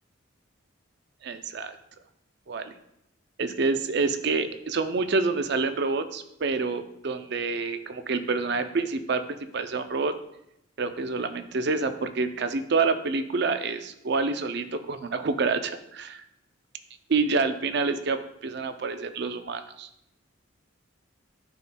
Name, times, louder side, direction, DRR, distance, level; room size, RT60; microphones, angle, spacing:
voice 1, 1.2-1.8 2.5-2.7 3.4-9.2 9.5-10.1 10.8-16.2 17.1-19.9, right 4 dB, 55° right, 9 dB, 0.4 m, -27 dB
10.5 x 4.1 x 2.2 m, 0.80 s
head